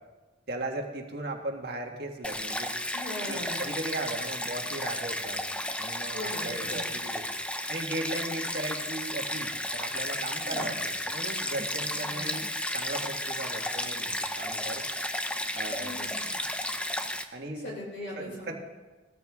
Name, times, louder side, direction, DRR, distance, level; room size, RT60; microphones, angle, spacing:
voice 1, 0.5-2.7 3.3-5.4 5.8-7.2 7.7-12.4 12.7-14.8 15.5-15.9 17.3-17.7 18.1-18.5, right 2 dB, 55° right, 2 dB, 1.7 m, -37 dB
Stream, 2.2-17.2, left 1 dB, 5° left, 0.6 m, -33 dB
voice 2, 2.9-3.6 6.1-6.9 10.4-10.7 12.1-12.4 15.7-16.3 17.5-18.5, left 1 dB, 60° left, -3 dB, 5.8 m, -40 dB
18.5 x 14.0 x 3.6 m, 1.2 s
head